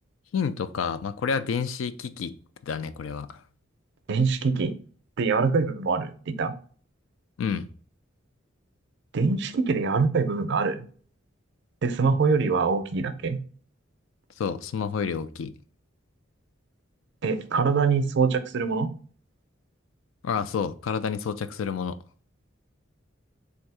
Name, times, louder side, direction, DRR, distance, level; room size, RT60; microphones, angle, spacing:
voice 1, 0.3-2.3 2.6-3.4 7.4-7.7 14.4-15.5 20.2-22.0, left 6 dB, 80° left, 0.4 m, -29 dB
voice 2, 4.1-4.7 5.2-6.5 9.1-10.9 11.8-13.4 17.2-18.9, right 4 dB, 60° right, 0.5 m, -24 dB
3.4 x 2.7 x 4.6 m
head